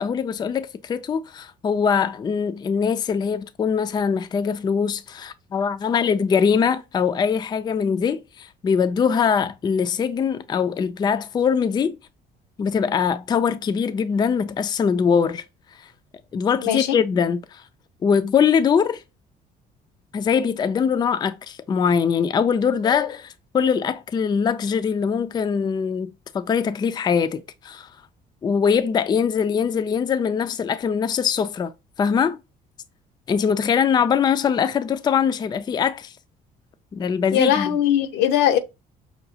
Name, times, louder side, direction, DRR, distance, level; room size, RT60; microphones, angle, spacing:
voice 1, 0.0-12.0 12.6-15.4 16.3-17.6 18.0-19.0 20.1-27.9 28.4-31.7 32.0-32.4 33.3-36.1 36.9-37.8, left 6 dB, 25° left, 0.3 m, -22 dB
voice 2, 16.6-17.0 37.3-38.6, left 10 dB, 80° left, 0.6 m, -20 dB
5.5 x 2.3 x 2.7 m
cardioid pair, 110°, 17 cm